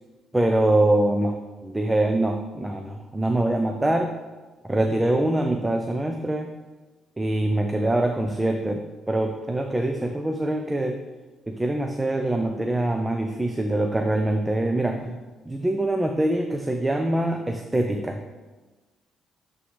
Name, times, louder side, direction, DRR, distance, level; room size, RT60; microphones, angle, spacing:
voice 1, 0.3-4.1 4.6-6.5 7.2-11.0 11.5-15.2 15.5-18.2, right 1 dB, 10° right, 4 dB, 0.5 m, -24 dB
11.0 x 3.8 x 3.3 m, 1.2 s
cardioid pair, 90°, 0 cm